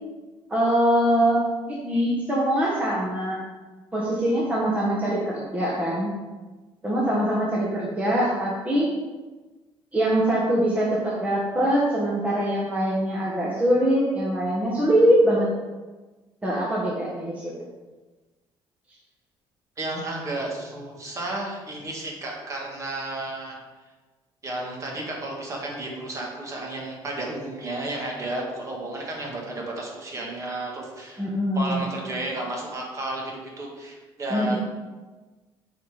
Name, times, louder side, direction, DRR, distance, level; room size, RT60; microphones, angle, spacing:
voice 1, 0.5-3.4 3.9-6.1 6.8-8.9 9.9-15.5 16.4-17.5 31.2-31.9 34.3-34.6, right 1 dB, 15° right, -5 dB, 1.4 m, -23 dB
voice 2, 19.8-23.6 24.4-31.3 31.5-34.6, right 2 dB, 35° right, -1 dB, 1.9 m, -32 dB
7.7 x 4.2 x 5.1 m, 1.2 s
cardioid pair, 125°, 10 cm